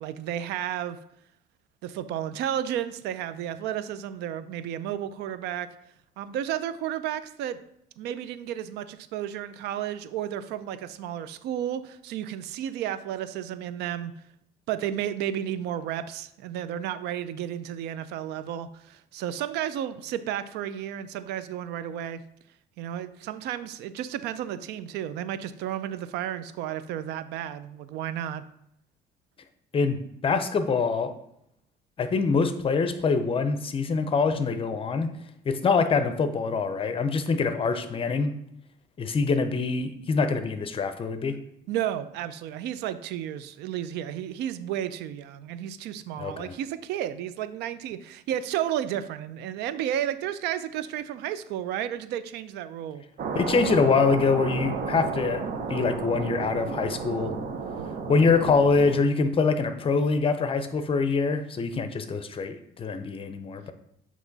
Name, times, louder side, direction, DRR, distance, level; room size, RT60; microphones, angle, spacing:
voice 1, 0.0-1.0 1.8-5.7 6.2-7.6 8.0-14.1 14.7-22.2 22.8-28.5 41.7-53.0, right 10 dB, 85° right, 13 dB, 0.4 m, -32 dB
voice 2, 29.7-31.1 32.0-35.2 35.4-38.3 39.0-41.4 46.2-46.5 53.3-55.4 55.7-57.4 58.1-63.7, left 4 dB, 30° left, 9 dB, 0.6 m, -24 dB
sound 1, 53.2-59.0, right 5 dB, 55° right, 0.8 m, -32 dB
8.0 x 3.0 x 4.0 m, 0.75 s
cardioid pair, 110°, 17 cm